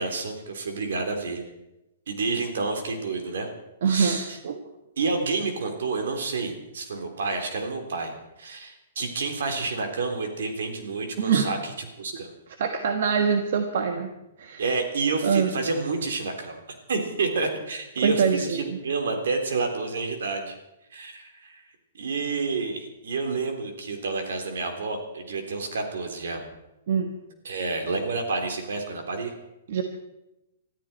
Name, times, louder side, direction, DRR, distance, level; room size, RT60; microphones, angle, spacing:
voice 1, 0.0-1.4 2.1-3.5 3.8-4.4 5.0-8.1 8.4-11.7 12.0-12.3 14.6-20.5 20.9-21.6 21.9-26.4 27.4-29.3, right 4 dB, 80° right, 4 dB, 3.6 m, -29 dB
voice 2, 3.8-4.6 11.2-11.5 12.6-14.1 14.4-14.6 15.2-15.5 18.0-18.8 26.9-27.1 29.7-29.8, right 6 dB, 60° right, 6 dB, 1.5 m, -24 dB
22.0 x 13.5 x 4.5 m, 0.92 s
hypercardioid pair, 160°, 0 cm